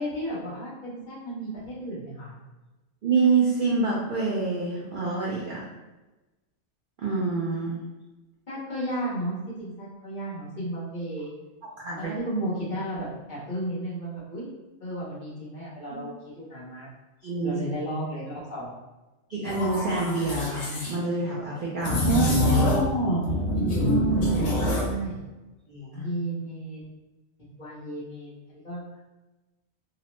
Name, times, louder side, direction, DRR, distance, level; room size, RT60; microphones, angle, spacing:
voice 1, 0.0-2.3 8.5-11.3 12.0-14.5 14.8-16.9 17.4-18.7 21.9-23.2 23.8-25.2 25.9-26.8 27.4-29.0, right 1 dB, 45° left, -8 dB, 0.8 m, -32 dB
voice 2, 3.0-5.7 7.0-7.8 11.8-12.1 15.9-16.0 17.2-17.5 19.3-22.2 25.7-26.1, right 3 dB, 70° right, -5 dB, 0.4 m, -27 dB
sound 1, 19.4-20.9 21.8-22.9 23.2-24.9, left 1 dB, 65° left, 1.0 m, -25 dB
2.8 x 2.0 x 2.9 m, 1.1 s
omnidirectional pair, 1.4 m